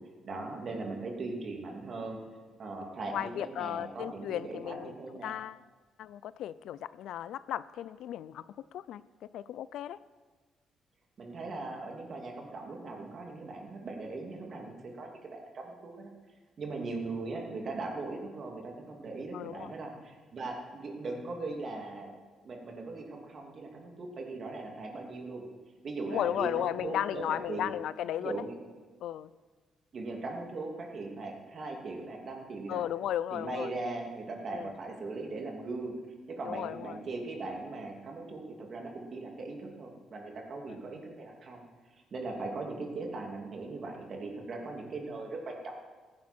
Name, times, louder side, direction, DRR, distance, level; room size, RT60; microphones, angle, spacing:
voice 1, 0.2-2.2 2.6-5.3 11.2-16.1 16.6-22.1 22.4-25.4 25.8-27.7 28.2-28.6 29.9-32.8 33.3-36.0 36.3-41.6 42.1-45.7, right 3 dB, 50° right, 1 dB, 2.7 m, -39 dB
voice 2, 3.1-4.9 5.2-5.6 6.0-8.4 8.7-9.0 9.3-10.0 19.3-19.7 26.1-28.4 29.0-29.3 32.7-33.7 34.5-34.7 36.4-37.0, left 11 dB, 80° left, 17 dB, 0.4 m, -35 dB
16.0 x 10.5 x 4.4 m, 1.4 s
cardioid pair, 90°, 0 cm